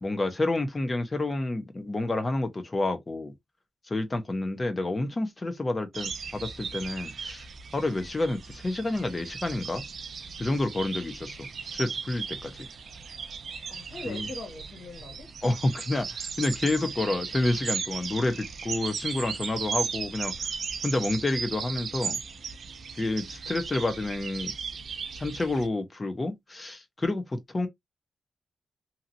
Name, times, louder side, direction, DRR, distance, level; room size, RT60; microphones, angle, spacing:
voice 1, 0.0-3.3 3.9-7.5 7.7-9.9 10.4-12.7 14.0-14.3 15.4-20.3 20.8-22.2 23.0-24.5 25.2-27.7, left 2 dB, 25° left, 0.8 m, -29 dB
sound 1, 5.9-25.7, right 5 dB, 65° right, 0.4 m, -37 dB
voice 2, 13.7-15.3 16.7-17.2, left 2 dB, 60° left, 1.4 m, -41 dB
2.8 x 2.7 x 2.6 m
wide cardioid pair, 110°, 0 cm